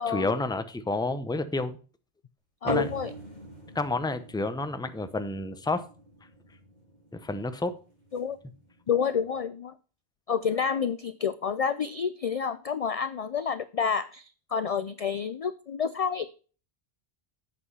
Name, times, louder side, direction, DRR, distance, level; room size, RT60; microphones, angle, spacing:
voice 1, 0.0-1.8 2.6-2.9 3.7-5.8 7.1-7.7, left 2 dB, 5° left, 0.5 m, -30 dB
voice 2, 2.6-3.1 8.1-8.4 8.9-9.7 10.3-16.3, left 6 dB, 55° left, 0.4 m, -29 dB
sound 1, 2.7-9.4, right 2 dB, 40° right, 5.0 m, -42 dB
8.1 x 6.2 x 5.5 m
omnidirectional pair, 1.1 m